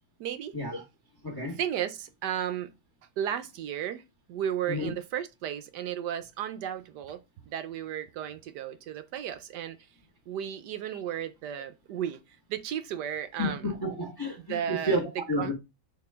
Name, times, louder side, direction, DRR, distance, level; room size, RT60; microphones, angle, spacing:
voice 1, 0.2-0.6 1.5-2.7 3.2-4.0 4.3-9.8 10.3-12.2 12.5-13.7 14.5-15.0 15.4-15.5, right 10 dB, 70° right, 1.0 m, -34 dB
voice 2, 1.2-1.6 4.7-4.9 13.4-15.5, equal, 15° left, 1.1 m, -31 dB
4.4 x 4.3 x 5.3 m
omnidirectional pair, 2.2 m